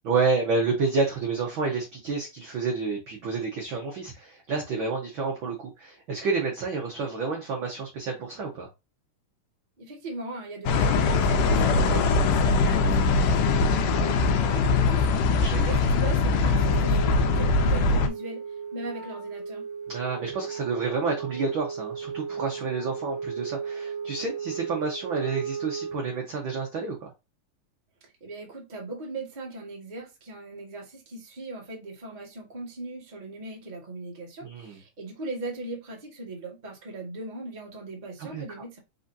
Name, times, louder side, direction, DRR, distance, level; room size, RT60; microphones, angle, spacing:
voice 1, 0.0-8.7 11.5-12.1 15.4-15.6 19.9-27.0 34.4-34.8 38.2-38.6, right 4 dB, 75° right, 1.1 m, -29 dB
voice 2, 9.8-18.4 18.7-19.6 28.2-38.8, right 2 dB, 25° right, 0.9 m, -39 dB
sound 1, 10.7-18.1, left 4 dB, 80° left, 2.2 m, -22 dB
Wind instrument woodwind instrument, 16.4-26.2, right 6 dB, 50° right, 1.8 m, -36 dB
4.9 x 3.9 x 2.7 m
omnidirectional pair, 3.7 m